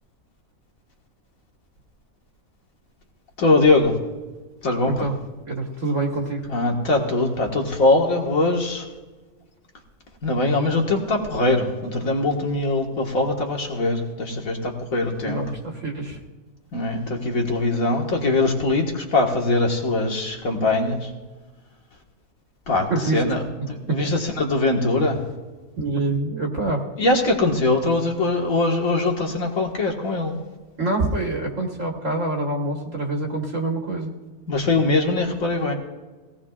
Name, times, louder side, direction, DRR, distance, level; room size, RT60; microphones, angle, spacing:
voice 1, 3.4-3.9 4.6-4.9 6.5-8.8 10.2-15.4 16.7-21.1 22.7-23.4 23.7-25.2 27.0-30.4 34.5-35.7, left 2 dB, 65° left, 1 dB, 2.1 m, -22 dB
voice 2, 5.5-6.5 15.2-16.2 22.9-23.2 23.9-24.0 25.8-26.8 30.8-34.1, right 2 dB, 60° right, 0 dB, 1.8 m, -25 dB
19.5 x 17.5 x 2.4 m, 1.3 s
omnidirectional pair, 1.5 m